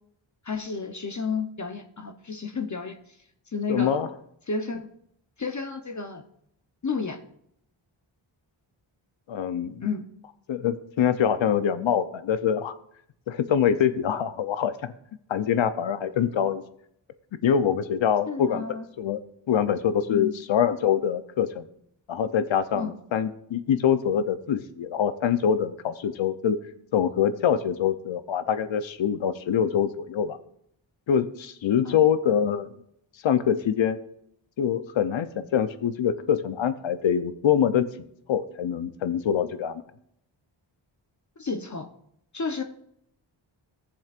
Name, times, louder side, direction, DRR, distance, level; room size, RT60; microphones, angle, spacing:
voice 1, 0.4-3.2 3.5-4.0 4.5-4.9 5.4-6.2 6.8-7.2 9.8-10.0 18.3-18.9 20.1-20.3 22.7-22.9 31.8-32.0 41.4-41.9 42.3-42.6, left 4 dB, 35° left, 5 dB, 0.9 m, -31 dB
voice 2, 3.7-4.1 9.3-9.8 10.5-12.7 13.3-14.9 15.3-16.6 17.4-18.6 19.0-19.2 19.5-21.6 22.1-26.6 26.9-30.4 31.1-32.7 33.2-34.0 34.6-37.9 38.3-39.8, left 8 dB, 65° left, 12 dB, 0.8 m, -24 dB
15.0 x 7.1 x 2.5 m, 0.72 s
cardioid pair, 50°, 49 cm